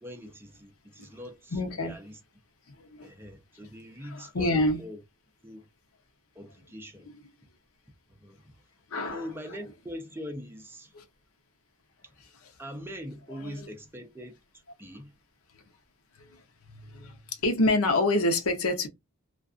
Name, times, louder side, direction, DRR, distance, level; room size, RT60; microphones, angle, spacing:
voice 1, 0.0-1.6 1.8-2.2 3.0-5.0 5.4-5.7 6.4-7.1 8.1-8.4 9.1-10.9 12.6-14.4 14.8-15.1, equal, 10° right, 0.6 m, -42 dB
voice 2, 1.5-2.0 2.7-3.1 4.0-4.8 7.0-7.2 8.9-9.3 10.9-11.0 12.4-12.5 13.4-13.7 16.2-18.9, left 2 dB, 70° left, 0.7 m, -28 dB
2.4 x 2.4 x 2.4 m
head